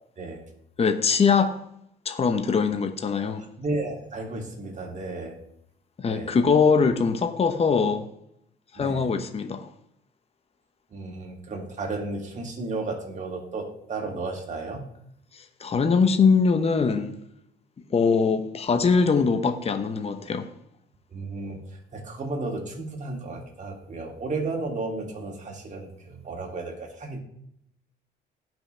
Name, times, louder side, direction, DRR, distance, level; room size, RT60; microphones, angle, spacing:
voice 1, 0.8-1.5 2.0-3.5 6.0-8.1 8.7-9.7 15.3-17.2 17.9-20.5, left 5 dB, 35° left, 1.1 m, -22 dB
voice 2, 3.6-5.4 6.1-6.4 8.7-9.1 10.9-14.8 21.1-27.2, right 3 dB, 40° right, 3.0 m, -33 dB
18.5 x 6.1 x 3.5 m
cardioid pair, 95°, 19 cm